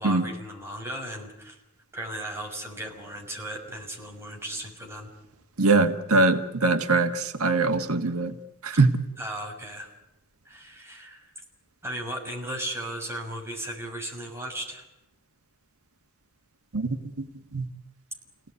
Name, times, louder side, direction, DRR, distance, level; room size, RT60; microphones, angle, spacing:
voice 1, 0.0-1.6 1.9-5.1 8.7-8.9 9.2-9.9 10.4-11.4 11.8-14.8, right 1 dB, 10° right, 1 dB, 6.4 m, -36 dB
voice 2, 5.6-8.3 8.6-8.9 16.7-17.0 17.5-17.6, right 3 dB, 85° right, 7 dB, 1.6 m, -22 dB
29.0 x 18.0 x 9.7 m, 0.90 s
head